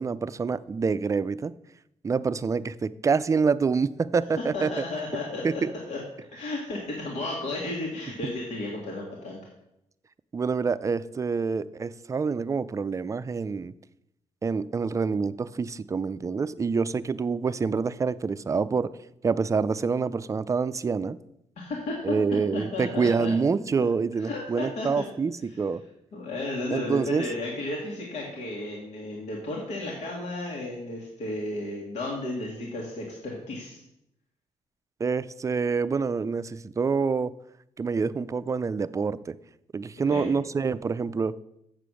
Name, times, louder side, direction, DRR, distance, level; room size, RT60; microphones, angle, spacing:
voice 1, 0.0-1.5 2.0-4.8 5.4-5.7 10.3-13.7 14.4-18.9 19.2-21.2 22.0-25.8 26.7-27.2 35.0-37.3 37.8-39.4 39.7-41.4, right 5 dB, 25° right, 15 dB, 0.4 m, -26 dB
voice 2, 4.5-6.0 6.3-9.4 21.6-22.0 22.5-23.3 23.8-23.9 24.2-24.9 25.5-25.6 26.1-33.8 40.1-40.3, left 2 dB, 85° left, -2 dB, 2.0 m, -33 dB
7.5 x 6.9 x 6.3 m, 0.82 s
cardioid pair, 105°, 12 cm